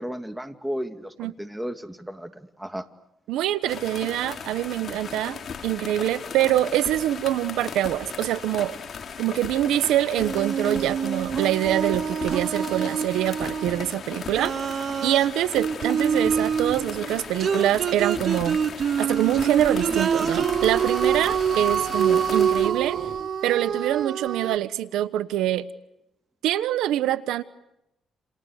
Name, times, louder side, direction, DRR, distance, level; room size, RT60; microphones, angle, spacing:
voice 1, 0.0-2.9, equal, 5° right, 8 dB, 2.4 m, -34 dB
voice 2, 3.3-8.8 9.2-14.5 15.0-18.6 19.0-23.0 23.4-25.7 26.4-27.4, right 13 dB, 90° right, 14 dB, 1.1 m, -25 dB
sound 1, 3.7-22.7, left 6 dB, 50° left, 3.0 m, -37 dB
sound 2, 10.2-13.9 14.4-24.6, right 7 dB, 55° right, 1.0 m, -26 dB
29.5 x 29.0 x 6.6 m, 0.89 s
cardioid pair, 90°, 0 cm